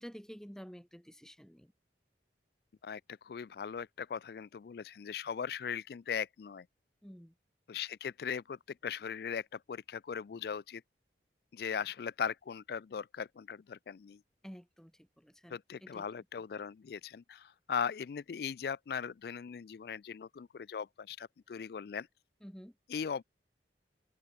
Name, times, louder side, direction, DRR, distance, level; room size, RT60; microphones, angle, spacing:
voice 1, 0.0-1.7 7.0-7.3 14.4-16.1 22.4-22.7, equal, 5° left, 2.8 m, -50 dB
voice 2, 2.8-6.7 7.7-10.8 11.5-14.2 15.5-22.1 22.9-23.2, left 7 dB, 55° left, 0.3 m, -39 dB
head